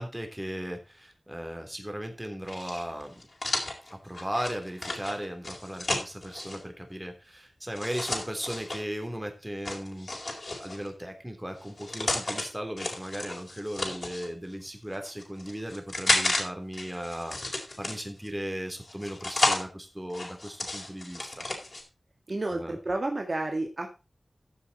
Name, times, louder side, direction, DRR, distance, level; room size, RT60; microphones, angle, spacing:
voice 1, 0.0-3.2 3.9-21.5 22.4-22.8, equal, 10° right, 5 dB, 3.3 m, -37 dB
sound 1, 2.5-6.6 7.7-8.8 9.7-10.9 11.6-12.5 12.8-14.3 14.9-16.4 16.7-18.3 18.8-19.6 20.1-21.8, left 2 dB, 50° left, 4.3 m, -32 dB
voice 2, 22.3-23.9, right 2 dB, 45° right, 3 dB, 1.9 m, -30 dB
14.5 x 7.2 x 4.1 m, 0.29 s
wide cardioid pair, 80°, 0 cm